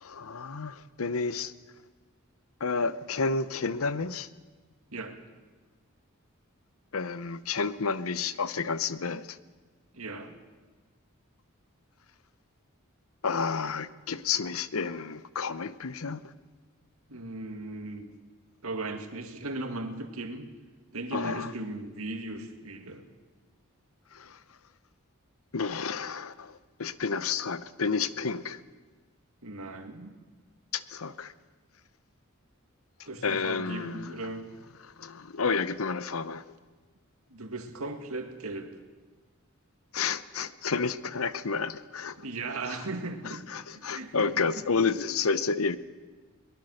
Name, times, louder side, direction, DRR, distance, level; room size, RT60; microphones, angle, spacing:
voice 1, 0.0-1.5 2.6-4.3 6.9-9.4 13.2-16.2 21.1-21.5 24.1-24.4 25.5-28.6 30.7-31.3 33.2-34.2 34.8-36.5 39.9-42.2 42.7-42.8 43.2-45.8, left 5 dB, 80° left, 0.8 m, -30 dB
voice 2, 9.9-10.4 17.1-18.1 18.6-20.5 20.9-23.0 29.4-30.2 33.1-34.5 37.3-38.7 42.2-43.4 43.7-44.6, right 2 dB, 85° right, 2.2 m, -37 dB
22.5 x 19.0 x 6.6 m
head